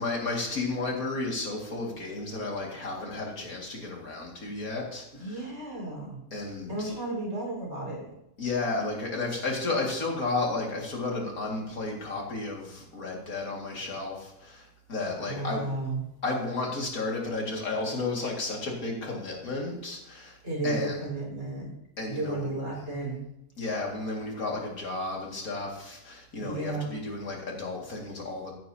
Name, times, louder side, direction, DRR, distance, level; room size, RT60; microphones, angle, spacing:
voice 1, 0.0-5.4 6.3-6.9 8.4-15.7 16.2-20.4 20.6-21.0 22.0-22.5 23.6-28.5, left 3 dB, 70° left, -1 dB, 2.6 m, -32 dB
voice 2, 5.2-6.2 6.7-8.1 15.3-16.0 20.4-21.7 22.1-23.2 26.4-26.9, right 2 dB, 50° right, -3 dB, 5.0 m, -33 dB
15.0 x 9.4 x 2.8 m, 0.84 s
omnidirectional pair, 1.5 m